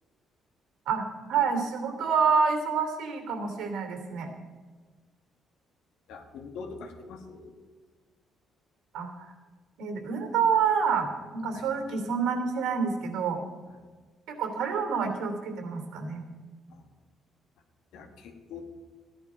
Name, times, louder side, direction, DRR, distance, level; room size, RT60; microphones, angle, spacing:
voice 1, 0.9-4.3 8.9-9.3 9.8-13.4 14.4-16.2, right 6 dB, 75° right, 5 dB, 2.9 m, -28 dB
voice 2, 6.1-7.5 11.5-11.6 16.7-16.8 17.9-18.6, left 4 dB, 85° left, 5 dB, 1.9 m, -43 dB
15.5 x 11.0 x 5.0 m, 1.4 s
cardioid pair, 165°, 0 cm